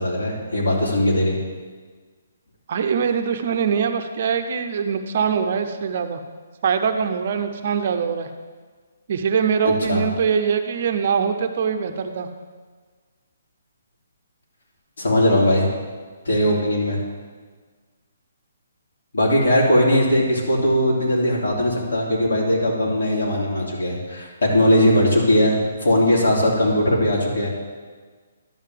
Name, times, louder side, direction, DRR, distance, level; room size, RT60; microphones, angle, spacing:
voice 1, 0.0-1.4 9.6-10.0 15.0-15.7 16.2-17.0 19.1-27.5, left 1 dB, 85° left, -3 dB, 3.0 m, -19 dB
voice 2, 2.7-6.2 6.6-8.3 9.1-12.3, right 6 dB, 35° right, 7 dB, 0.5 m, -23 dB
11.0 x 3.8 x 7.4 m, 1.5 s
hypercardioid pair, 180°, 0 cm